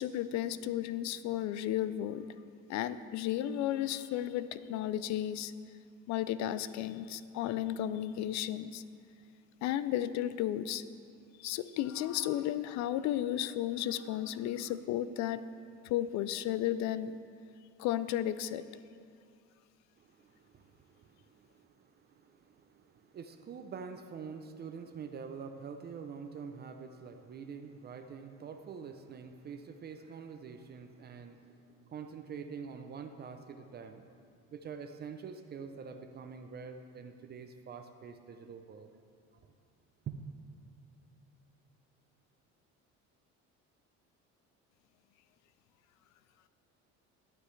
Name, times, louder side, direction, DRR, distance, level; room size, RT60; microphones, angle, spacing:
voice 1, 0.0-2.3 2.7-5.5 6.1-8.8 9.6-10.8 11.4-15.4 15.8-17.2 17.8-18.6, left 12 dB, 65° left, 14 dB, 0.5 m, -33 dB
voice 2, 20.0-34.2 34.5-38.9 39.3-39.4 40.1-40.2, right 6 dB, 35° right, 7 dB, 0.5 m, -46 dB
12.0 x 9.4 x 3.2 m, 2.4 s
cardioid pair, 135°, 30 cm